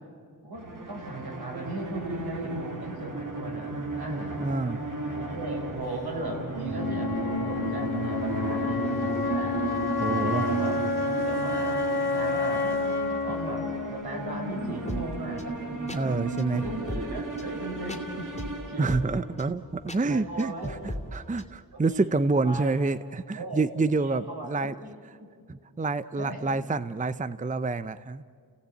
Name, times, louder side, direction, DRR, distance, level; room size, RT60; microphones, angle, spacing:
voice 1, 0.4-4.3 5.0-9.5 10.2-10.8 11.2-12.7 13.2-16.1 16.5-18.3 18.7-18.9 20.1-20.8 21.7-22.1 22.4-22.7 23.3-23.6 23.9-24.5 24.8-25.0 26.2-26.4, right 1 dB, 75° right, 0 dB, 6.0 m, -37 dB
sound 1, 0.5-19.3, right 3 dB, 55° right, 2.6 m, -34 dB
sound 2, 1.8-21.5, equal, 15° left, 2.8 m, -44 dB
voice 2, 4.4-4.8 10.0-10.5 15.9-16.6 18.8-24.8 25.5-28.2, right 3 dB, 20° right, 14 dB, 0.6 m, -28 dB
Wind instrument woodwind instrument, 6.7-14.7, left 4 dB, 75° left, 2.0 m, -30 dB
30.0 x 17.5 x 8.6 m, 2.2 s
cardioid pair, 55°, 38 cm